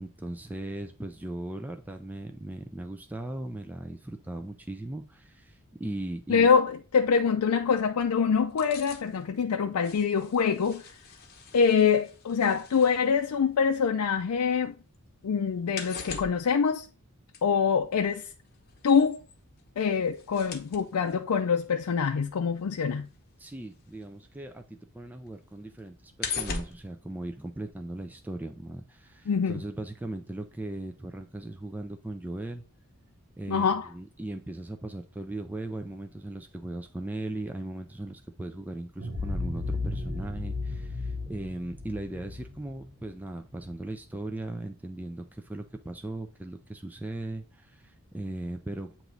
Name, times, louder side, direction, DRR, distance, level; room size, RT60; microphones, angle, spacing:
voice 1, 0.0-6.5 23.4-32.6 33.4-48.9, right 1 dB, 10° right, 0.3 m, -38 dB
voice 2, 6.3-10.8 11.5-14.7 15.2-16.9 17.4-18.3 18.8-19.2 19.8-23.1 29.3-29.6 33.5-33.9, left 6 dB, 85° left, 0.4 m, -25 dB
sound 1, 8.4-14.5 14.8-24.5 24.9-28.0 28.3-28.4, left 5 dB, 45° left, 1.0 m, -42 dB
sound 2, 39.0-43.7, left 3 dB, 75° right, 1.6 m, -34 dB
8.1 x 3.0 x 3.8 m
head